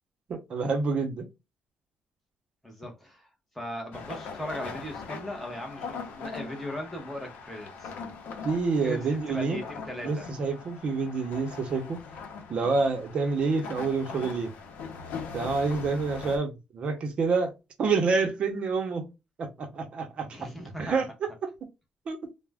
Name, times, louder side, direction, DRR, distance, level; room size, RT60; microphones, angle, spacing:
voice 1, 0.3-1.3 8.4-9.6 10.0-12.0 12.5-14.5 15.3-17.5 17.8-19.1 19.4-20.5 20.8-21.5 22.1-22.2, right 4 dB, 40° right, 0.6 m, -28 dB
voice 2, 2.6-3.3 3.5-7.9 8.8-10.3 20.2-21.0, equal, 5° left, 0.7 m, -38 dB
sound 1, 3.9-16.4, left 5 dB, 85° left, 0.6 m, -41 dB
2.3 x 2.0 x 3.3 m
cardioid pair, 175°, 3 cm